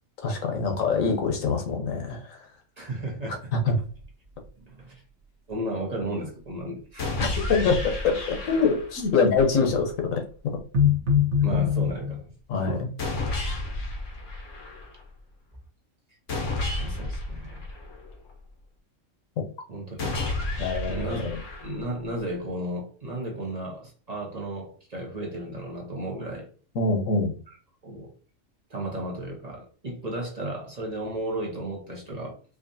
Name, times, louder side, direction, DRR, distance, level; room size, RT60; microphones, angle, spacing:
voice 1, 0.2-2.4 3.7-3.8 7.5-10.2 11.5-11.6 12.5-12.7 20.6-21.4 26.8-27.3, left 4 dB, 85° left, 4 dB, 1.3 m, -24 dB
voice 2, 2.8-3.5 4.6-5.0 5.5-7.2 11.4-12.3 12.6-12.9 16.8-17.7 19.7-20.1 20.9-26.5 27.5-27.6 27.8-28.1 28.7-32.4, right 1 dB, 35° right, -1 dB, 1.0 m, -34 dB
sound 1, 4.0-4.1 4.5-4.6 9.4-9.8 10.6-12.2, left 7 dB, 65° right, 1.3 m, -22 dB
sound 2, 7.0-9.0 13.0-15.0 16.3-18.3 20.0-22.0, left 2 dB, 70° left, 1.3 m, -32 dB
4.9 x 2.3 x 2.7 m, 0.40 s
omnidirectional pair, 1.4 m